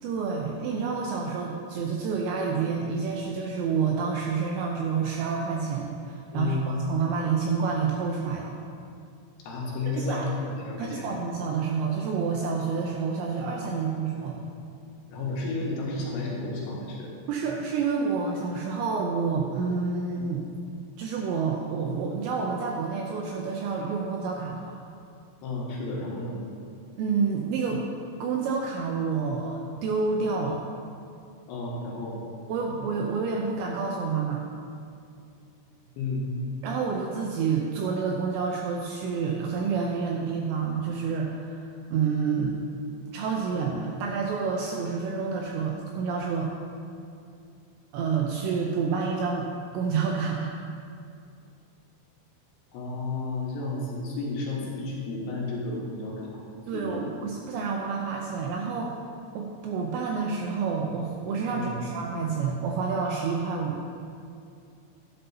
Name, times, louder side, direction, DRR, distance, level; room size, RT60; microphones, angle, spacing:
voice 1, 0.0-8.6 9.9-10.3 10.8-14.4 17.3-20.4 21.0-24.8 27.0-27.8 28.2-30.7 32.5-34.4 36.6-41.6 41.9-42.6 43.1-46.5 47.9-50.6 56.7-58.9 59.3-63.8, right 5 dB, 85° right, 0 dB, 2.6 m, -28 dB
voice 2, 6.3-6.6 9.4-11.1 15.1-17.1 25.4-26.4 31.5-32.2 36.0-36.2 52.7-56.4 56.7-57.1 61.5-61.8, left 2 dB, 70° left, -4 dB, 3.3 m, -32 dB
11.0 x 11.0 x 2.8 m, 2.4 s
omnidirectional pair, 5.7 m